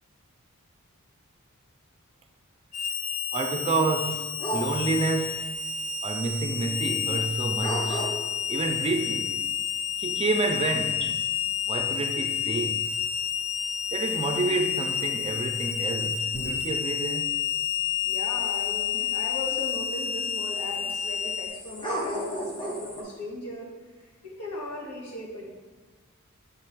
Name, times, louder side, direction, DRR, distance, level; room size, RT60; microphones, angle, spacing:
Harmonica, 2.7-21.5, left 9 dB, 70° left, 1.0 m, -30 dB
voice 1, 3.3-5.5 6.0-8.1 8.5-9.5 10.0-11.2 11.7-12.9 13.9-17.3, right 3 dB, 25° right, 0.4 m, -29 dB
sound 1, 4.4-23.0, equal, 20° left, 1.0 m, -39 dB
voice 2, 18.0-23.7 24.0-25.5, left 1 dB, 90° left, 1.9 m, -38 dB
6.3 x 3.2 x 5.9 m
head